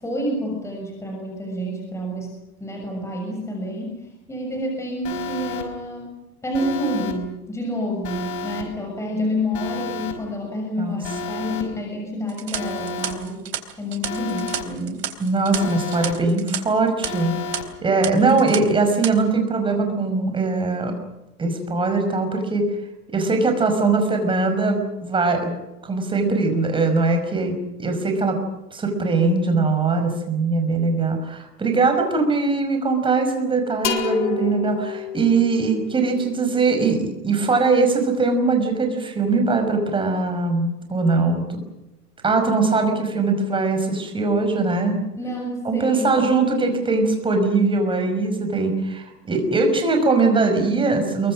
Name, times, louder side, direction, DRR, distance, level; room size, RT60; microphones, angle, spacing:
voice 1, 0.0-2.3 2.6-3.9 4.3-6.1 6.4-13.5 13.8-15.0 45.2-46.4, equal, 5° left, 0 dB, 6.6 m, -28 dB
Alarm, 5.0-5.6 6.5-7.1 8.0-8.6 9.5-10.1 11.0-11.6 12.5-13.1 14.0-14.6 15.5-16.1 17.0-17.6, left 3 dB, 65° left, 5.7 m, -31 dB
sound 1, 12.3-16.6 16.9-17.1 17.5-17.6 18.0-18.6 18.9-19.1, right 10 dB, 90° right, 4.0 m, -31 dB
voice 2, 15.2-17.4 17.8-20.9 21.4-22.7 23.1-25.6 25.8-28.4 28.7-41.6 42.2-45.0 45.6-51.3, right 3 dB, 10° right, 5 dB, 5.4 m, -21 dB
sound 2, 33.8-37.5, left 9 dB, 80° left, 4.5 m, -31 dB
28.5 x 23.5 x 6.3 m, 0.94 s
hypercardioid pair, 145°, 47 cm